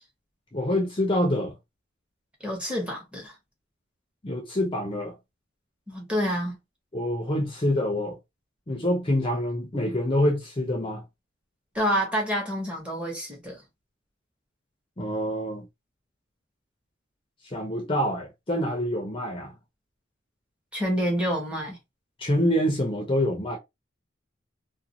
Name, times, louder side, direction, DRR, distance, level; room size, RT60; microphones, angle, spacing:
voice 1, 0.5-1.5 4.2-5.1 6.9-8.2 8.7-11.0 15.0-15.7 17.4-19.5 22.2-23.6, left 1 dB, 30° left, 0.6 m, -26 dB
voice 2, 2.4-3.3 5.9-6.6 11.7-13.6 20.7-21.8, equal, 5° right, 1.0 m, -28 dB
2.5 x 2.3 x 2.8 m
head